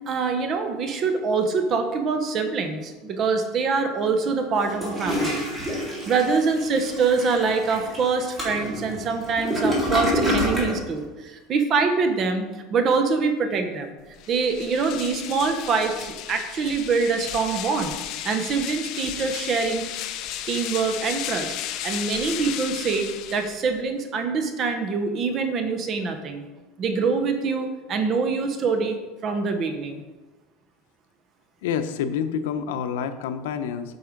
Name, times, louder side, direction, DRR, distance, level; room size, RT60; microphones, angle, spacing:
voice 1, 0.1-5.4 6.0-13.9 14.3-18.0 18.2-19.9 20.5-21.5 21.8-26.4 26.8-30.0, right 4 dB, 35° right, 6 dB, 0.9 m, -24 dB
Toilet flush, 4.6-10.8, equal, 10° right, 2.3 m, -27 dB
sound 1, 14.1-23.8, left 11 dB, 50° left, 0.6 m, -34 dB
voice 2, 31.6-34.0, left 7 dB, 90° left, 9 dB, 0.7 m, -28 dB
8.1 x 5.5 x 5.2 m, 1.2 s
supercardioid pair, 155°, 0 cm